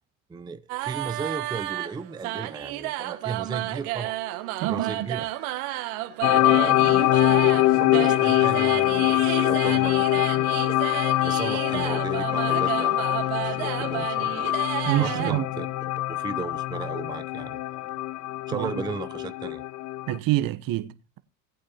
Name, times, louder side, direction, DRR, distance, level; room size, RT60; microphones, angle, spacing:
voice 1, 0.3-4.2 4.7-5.3 6.4-10.6 11.2-13.1 13.4-14.5 15.0-15.7 16.1-17.9 18.5-19.6, right 4 dB, 10° right, 0.5 m, -35 dB
sound 1, 0.7-15.3, right 16 dB, 70° right, 1.7 m, -32 dB
voice 2, 4.6-5.1 14.8-15.5 18.5-18.7 20.1-21.2, right 15 dB, 50° right, 1.1 m, -26 dB
sound 2, 6.2-20.2, left 16 dB, 40° left, 0.5 m, -24 dB
18.5 x 8.6 x 2.9 m
hypercardioid pair, 85°, 45 cm